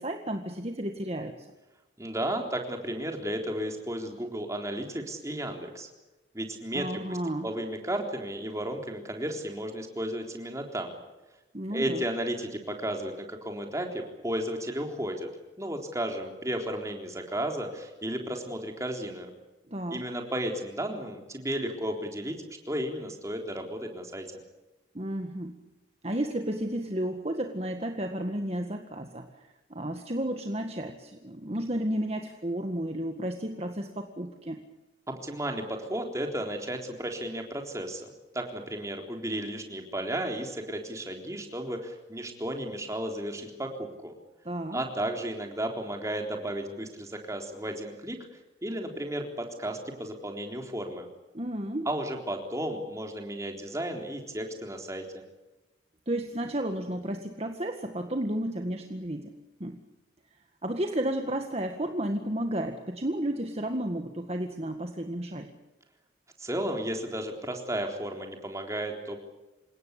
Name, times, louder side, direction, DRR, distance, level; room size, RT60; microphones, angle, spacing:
voice 1, 0.0-1.5 6.7-7.5 11.5-12.0 19.7-20.0 24.9-25.6 26.0-34.6 44.5-44.8 51.3-51.9 56.1-59.8 60.6-65.5, right 1 dB, 35° right, 5 dB, 1.8 m, -32 dB
voice 2, 2.0-5.9 6.3-7.2 7.4-11.0 11.7-15.3 15.6-19.3 19.9-22.4 22.7-24.3 35.1-38.1 38.3-44.1 44.7-48.2 48.6-51.1 51.9-55.1 66.4-69.2, right 1 dB, 15° right, 3 dB, 3.8 m, -33 dB
28.5 x 18.0 x 8.3 m, 1.1 s
head